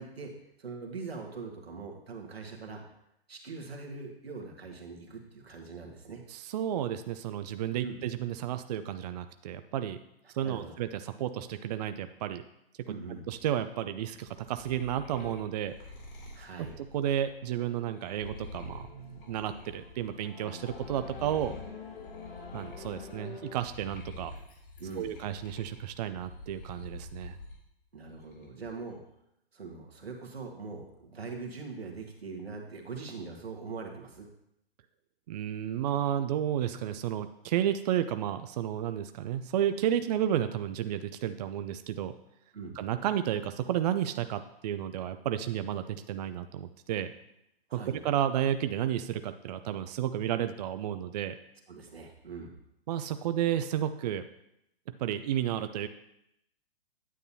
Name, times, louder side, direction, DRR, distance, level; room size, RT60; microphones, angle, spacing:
voice 1, 0.0-2.8 3.3-6.2 7.8-8.0 10.4-10.8 12.9-13.3 16.3-16.7 24.8-25.1 27.9-29.0 29.5-34.3 42.5-42.8 47.7-48.0 51.7-52.5, right 4 dB, 85° right, 2 dB, 1.7 m, -42 dB
voice 2, 6.3-10.0 10.3-12.4 12.8-12.9 13.3-15.7 16.8-21.5 22.5-24.3 24.9-27.4 35.3-42.1 42.8-47.1 47.7-51.4 52.9-54.2 55.0-55.9, right 10 dB, 40° right, 10 dB, 0.5 m, -32 dB
sound 1, 14.3-20.3 20.6-27.6 28.0-28.7, left 2 dB, 60° left, 3.0 m, -47 dB
sound 2, 15.1-15.3 16.5-23.6, left 5 dB, 75° left, 1.5 m, -48 dB
9.3 x 8.1 x 2.8 m, 0.80 s
figure-of-eight pair, 120°, 30 cm